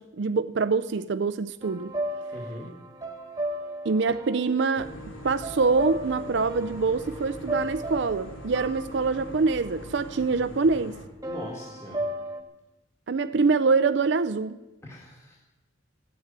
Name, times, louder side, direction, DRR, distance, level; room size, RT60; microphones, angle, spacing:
voice 1, 0.0-1.9 3.8-4.9 5.2-11.0 13.1-14.6, right 4 dB, 60° right, 0.5 m, -25 dB
sound 1, 1.6-10.4 11.2-12.4, right 1 dB, 15° right, 1.4 m, -36 dB
voice 2, 2.3-2.7 11.3-12.0 14.8-15.4, equal, 15° left, 2.1 m, -40 dB
sound 2, 4.7-11.1, left 1 dB, 80° left, 2.6 m, -42 dB
15.0 x 9.8 x 8.8 m
head